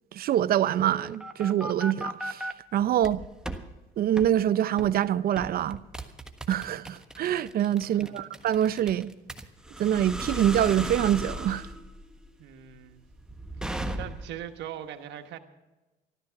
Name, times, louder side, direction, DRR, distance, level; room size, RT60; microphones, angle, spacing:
voice 1, 0.1-2.4 2.7-3.2 4.0-5.8 6.5-9.1 9.8-11.6, right 11 dB, 55° right, 0.6 m, -25 dB
sound 1, 0.8-2.5 3.0-3.6 4.2-4.3 4.8-5.0 5.4-14.4, right 1 dB, 5° right, 1.3 m, -36 dB
voice 2, 7.8-8.2 12.4-13.0 13.6-15.4, right 10 dB, 75° right, 1.3 m, -41 dB
13.5 x 13.5 x 5.8 m
cardioid pair, 90°, 18 cm